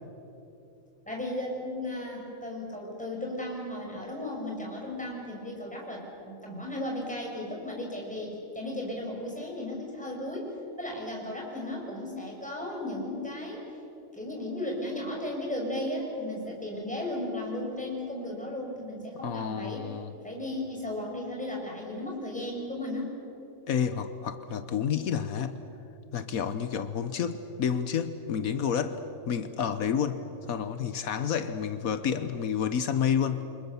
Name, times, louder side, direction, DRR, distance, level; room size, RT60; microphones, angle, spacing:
voice 1, 1.1-13.6 14.1-19.9 20.2-23.2, left 1 dB, 5° left, -2 dB, 5.9 m, -35 dB
voice 2, 19.2-20.1 23.7-25.6 26.1-29.0 29.3-33.4, left 7 dB, 80° left, 11 dB, 1.4 m, -29 dB
29.0 x 25.5 x 7.0 m, 3.0 s
omnidirectional pair, 1.5 m